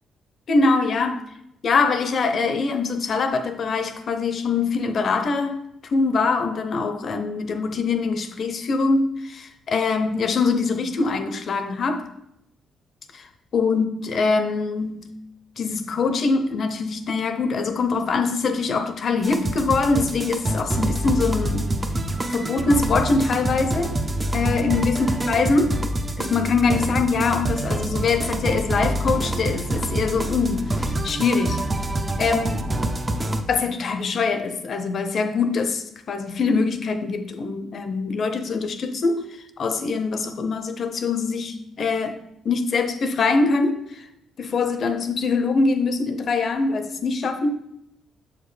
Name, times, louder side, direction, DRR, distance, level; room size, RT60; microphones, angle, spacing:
voice 1, 0.5-1.2 1.6-12.1 13.1-13.3 13.5-15.2 15.6-21.7 22.3-24.0 24.3-25.8 26.2-31.7 32.2-32.7 33.5-39.3 39.6-44.0 44.4-47.6, left 4 dB, 55° left, 8 dB, 0.6 m, -23 dB
sound 1, 19.2-33.4, right 1 dB, 20° right, 0.5 m, -26 dB
7.2 x 5.0 x 3.2 m, 0.80 s
cardioid pair, 90°, 0 cm